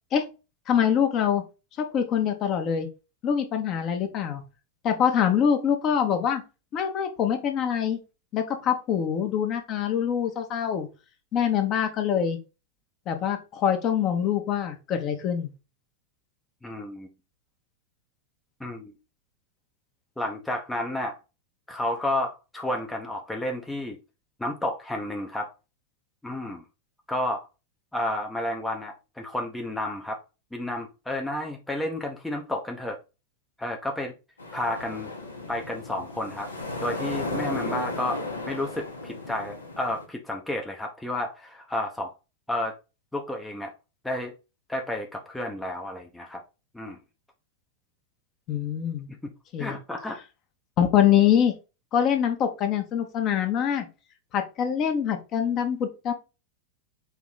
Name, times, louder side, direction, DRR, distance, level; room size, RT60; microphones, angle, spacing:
voice 1, 0.7-1.4 1.8-2.9 3.2-4.4 4.8-6.4 6.7-8.0 8.3-10.9 11.3-12.4 13.1-15.5 48.5-49.1 49.5-49.8 50.8-51.5 51.9-53.8 54.3-56.1, left 8 dB, 35° left, 5 dB, 1.0 m, -24 dB
voice 2, 16.6-17.1 18.6-18.9 20.2-21.2 21.7-24.0 24.4-25.5 26.2-26.6 27.1-27.5 27.9-30.2 30.5-33.0 33.6-34.1 34.5-35.1 35.5-36.5 36.8-38.2 38.5-42.1 42.5-42.7 43.1-43.7 44.0-44.3 44.7-46.4 46.7-47.0 49.1-49.2 49.6-50.2, left 1 dB, 5° left, 1 dB, 0.7 m, -31 dB
sound 1, 34.4-40.1, left 2 dB, 75° left, 1.1 m, -34 dB
4.6 x 3.0 x 3.9 m, 0.29 s
figure-of-eight pair, 90°, 0 cm